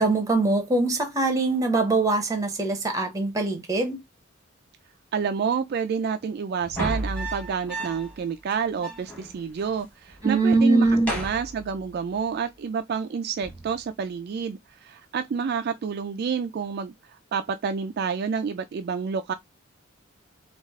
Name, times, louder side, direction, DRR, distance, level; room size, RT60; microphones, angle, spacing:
voice 1, 0.0-4.0 10.2-11.1, right 3 dB, 15° right, 0.7 m, -22 dB
voice 2, 5.1-16.9 17.3-19.3, right 6 dB, 50° right, 0.3 m, -29 dB
sound 1, 6.6-8.2 8.5-8.6 8.8-9.8 10.1-10.4 10.8-12.2 13.4-13.8, right 1 dB, 5° left, 1.2 m, -34 dB
3.1 x 2.4 x 3.5 m
head